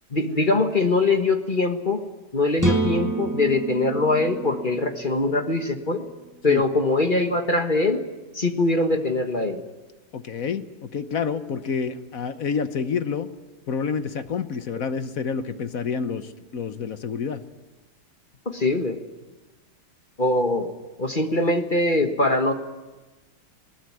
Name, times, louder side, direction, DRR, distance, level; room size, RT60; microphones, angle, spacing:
voice 1, 0.1-2.1 2.3-6.0 6.4-8.0 8.3-9.6 18.4-19.0 20.2-20.7 21.0-22.5, left 2 dB, 25° left, 6 dB, 1.4 m, -22 dB
sound 1, 2.6-6.4, right 3 dB, 10° right, 1.0 m, -28 dB
voice 2, 10.1-13.3 13.7-17.4, left 6 dB, 50° left, 11 dB, 1.2 m, -28 dB
21.0 x 19.0 x 9.6 m, 1.2 s
omnidirectional pair, 2.2 m